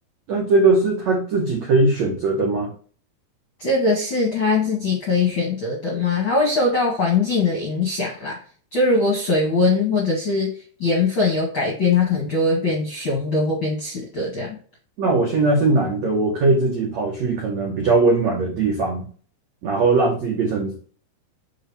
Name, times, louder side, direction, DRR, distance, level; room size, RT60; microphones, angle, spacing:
voice 1, 0.3-2.7 15.0-19.1 19.6-20.9, right 3 dB, 80° right, -2 dB, 1.5 m, -20 dB
voice 2, 3.6-8.4 8.7-14.6, left 3 dB, 50° left, -2 dB, 1.4 m, -21 dB
6.5 x 5.0 x 3.5 m, 0.42 s
omnidirectional pair, 5.3 m